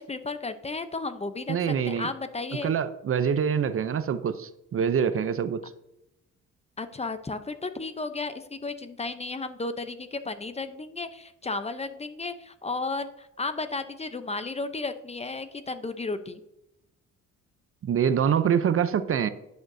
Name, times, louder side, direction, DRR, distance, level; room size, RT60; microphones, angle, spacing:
voice 1, 0.0-1.6 1.9-2.7 6.8-16.4, left 3 dB, 20° left, 10 dB, 0.7 m, -33 dB
voice 2, 1.5-2.1 2.6-5.6 17.8-19.3, right 7 dB, 45° right, 12 dB, 0.6 m, -25 dB
11.0 x 6.5 x 2.7 m, 0.85 s
cardioid pair, 90°, 30 cm